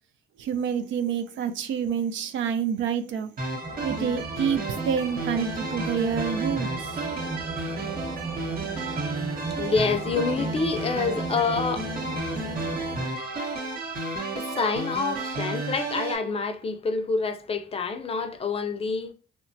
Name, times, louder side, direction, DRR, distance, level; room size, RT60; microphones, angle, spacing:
voice 1, 0.4-3.3 3.8-6.9, right 7 dB, 75° right, 0.4 m, -28 dB
sound 1, 3.4-16.2, right 2 dB, 50° right, 0.8 m, -32 dB
sound 2, 3.6-13.1, right 3 dB, 15° right, 1.0 m, -36 dB
voice 2, 9.6-11.9 14.4-19.1, left 4 dB, 30° left, 0.4 m, -27 dB
2.9 x 2.1 x 2.6 m
cardioid pair, 90°, 20 cm